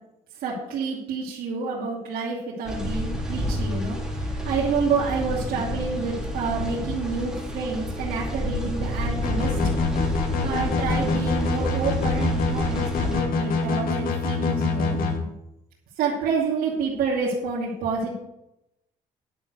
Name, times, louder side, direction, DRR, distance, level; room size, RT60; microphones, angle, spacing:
voice 1, 0.4-9.7 10.0-15.2 16.0-18.1, right 4 dB, 80° right, -6 dB, 2.7 m, -28 dB
sound 1, 2.6-13.2, equal, 5° right, 3.4 m, -29 dB
sound 2, 9.2-15.1, left 4 dB, 75° left, 2.3 m, -25 dB
11.0 x 6.0 x 7.8 m, 0.86 s
cardioid pair, 100°, 15 cm